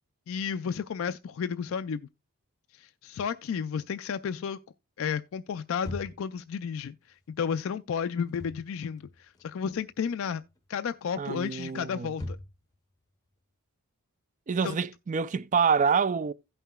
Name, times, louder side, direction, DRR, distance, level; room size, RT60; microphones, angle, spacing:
voice 1, 0.3-2.1 2.7-4.6 5.0-7.0 7.4-10.4 10.7-12.4 14.6-14.8, left 7 dB, 65° left, 0.3 m, -32 dB
sound 1, 5.8-6.4 8.2-8.6 9.0-9.9 10.2-10.6 11.3-12.8, left 1 dB, 15° left, 0.6 m, -41 dB
voice 2, 11.2-12.1 14.5-16.3, right 6 dB, 35° right, 0.3 m, -26 dB
16.0 x 5.6 x 2.2 m
head